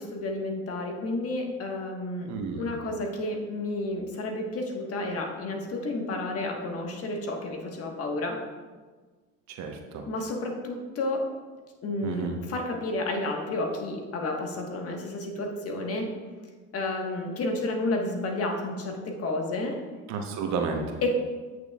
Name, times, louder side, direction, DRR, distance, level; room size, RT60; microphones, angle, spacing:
voice 1, 0.0-2.3 2.6-8.4 10.1-11.3 11.8-16.1 16.7-19.8 21.0-21.1, left 2 dB, 45° left, 1 dB, 1.4 m, -31 dB
voice 2, 2.3-2.8 9.5-10.0 12.0-12.4 20.1-21.0, right 5 dB, 55° right, 3 dB, 1.1 m, -32 dB
9.0 x 6.2 x 2.4 m, 1.4 s
supercardioid pair, 90°, 33 cm